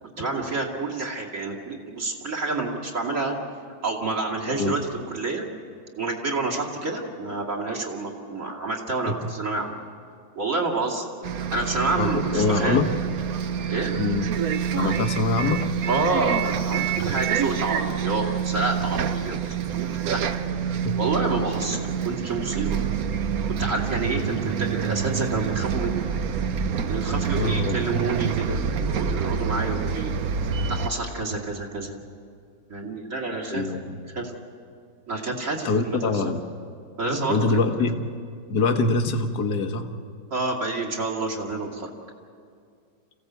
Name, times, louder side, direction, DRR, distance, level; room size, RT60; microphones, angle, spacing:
voice 1, 0.0-3.4 3.8-4.8 5.1-5.4 6.0-9.8 10.4-11.0 11.5-12.8 13.7-13.9 15.9-19.4 19.7-20.3 21.0-22.8 23.5-26.1 26.9-30.1 30.7-31.9 32.7-33.6 34.1-34.3 35.1-36.2 37.0-37.6 40.3-41.9, right 3 dB, 40° right, -2 dB, 2.9 m, -28 dB
Bus, 11.2-30.9, right 7 dB, 60° right, 1.1 m, -27 dB
voice 2, 12.0-13.0 14.0-14.3 14.7-15.8 20.7-21.0 21.6-22.1 27.4-28.0 33.5-34.0 35.7-36.4 37.3-38.1 38.5-39.9, left 3 dB, 60° left, 6 dB, 1.7 m, -25 dB
27.0 x 16.0 x 8.2 m, 2.3 s
omnidirectional pair, 2.0 m